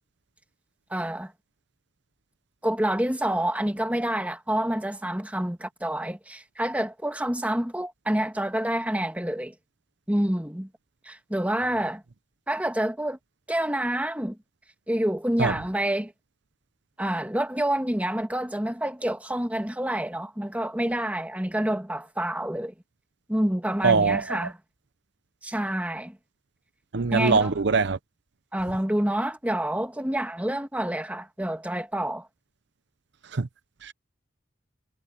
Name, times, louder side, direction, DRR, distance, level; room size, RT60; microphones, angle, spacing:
voice 1, 0.9-1.3 2.6-9.5 10.1-10.7 11.0-12.0 12.5-13.2 13.5-14.4 14.9-16.1 17.0-22.7 23.3-24.6 25.4-26.2 27.1-27.5 28.5-32.3, right 1 dB, 10° right, 1.6 m, -28 dB
voice 2, 23.8-24.4 26.9-28.0 33.3-33.5 33.8-33.9, right 4 dB, 65° right, 0.8 m, -22 dB
head